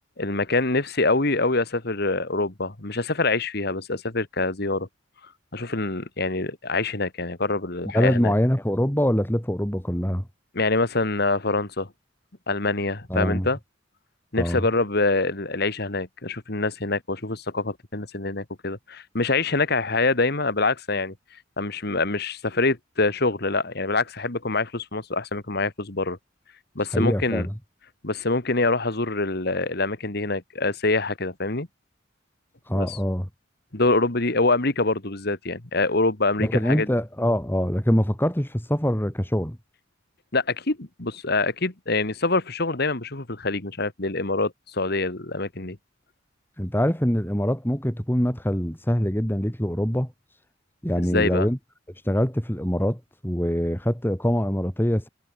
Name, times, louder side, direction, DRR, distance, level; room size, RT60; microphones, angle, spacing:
voice 1, 0.2-4.9 5.5-8.3 10.5-11.9 12.5-13.6 14.3-21.1 21.6-26.2 26.8-27.5 28.0-31.7 32.7-33.0 33.7-36.9 40.3-45.8 51.1-51.5, left 3 dB, 55° left, 2.2 m, -25 dB
voice 2, 7.9-10.3 13.1-13.5 14.4-14.6 26.9-27.5 32.7-33.3 36.4-39.6 46.6-50.1 50.8-51.6 52.1-55.1, equal, 10° left, 3.8 m, -24 dB
head